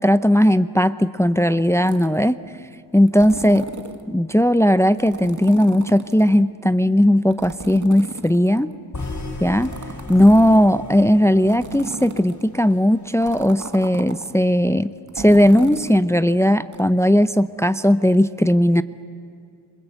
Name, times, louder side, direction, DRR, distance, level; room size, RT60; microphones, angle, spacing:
voice 1, 0.0-2.4 2.9-3.6 4.1-8.7 9.4-9.7 10.1-18.8, equal, 5° left, 13 dB, 0.6 m, -17 dB
sound 1, 1.8-2.2 3.1-4.0 5.0-6.4 7.3-8.7 9.5-10.8 11.5-12.5 13.2-14.3 15.1-16.0 16.7-16.8, right 3 dB, 45° right, 1.9 m, -35 dB
sound 2, 8.9-13.0, left 2 dB, 40° left, 3.6 m, -35 dB
27.0 x 27.0 x 8.1 m, 2.3 s
wide cardioid pair, 80°, 42 cm